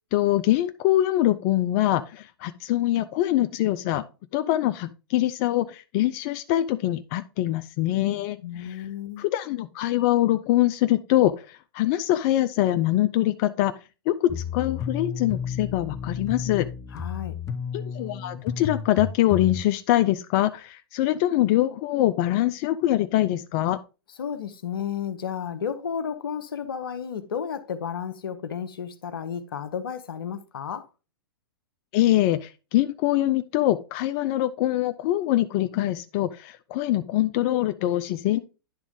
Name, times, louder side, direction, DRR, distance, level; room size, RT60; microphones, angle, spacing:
voice 1, 0.1-4.0 4.3-8.8 9.2-13.7 14.1-16.7 17.7-23.8 31.9-38.4, left 14 dB, 45° left, 0.4 m, -24 dB
voice 2, 8.4-9.3 16.9-17.4 24.2-30.9, left 8 dB, 80° left, 0.8 m, -32 dB
sound 1, 14.3-19.6, left 6 dB, 25° left, 0.8 m, -32 dB
10.5 x 3.6 x 3.6 m
hypercardioid pair, 110°, 12 cm